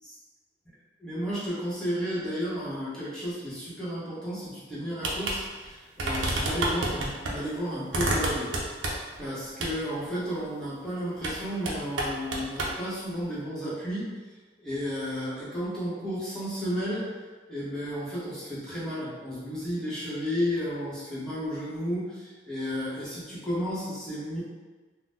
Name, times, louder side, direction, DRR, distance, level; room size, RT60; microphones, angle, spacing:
voice 1, 1.0-8.9 9.2-14.1 14.6-17.1 17.5-24.4, equal, 5° left, -10 dB, 1.0 m, -33 dB
sound 1, 5.0-5.4 5.6-5.7 6.0-7.3 7.9-9.2 9.6-9.8 11.2-11.4 11.7-12.8, right 1 dB, 75° right, 0.5 m, -29 dB
2.6 x 2.1 x 3.5 m, 1.3 s
head